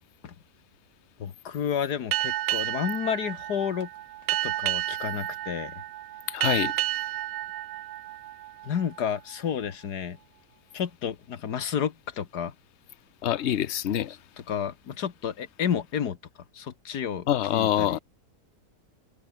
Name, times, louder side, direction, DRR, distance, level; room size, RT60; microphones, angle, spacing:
voice 1, 1.2-3.9 4.4-5.8 8.6-10.2 10.7-12.5 14.5-16.2 16.5-18.0, left 8 dB, 85° left, 2.0 m, -31 dB
Boat Water vehicle, 2.1-9.2, right 15 dB, 75° right, 1.0 m, -31 dB
voice 2, 6.3-6.7 13.2-14.2 17.3-18.0, left 11 dB, 50° left, 1.0 m, -25 dB
omnidirectional pair, 1.7 m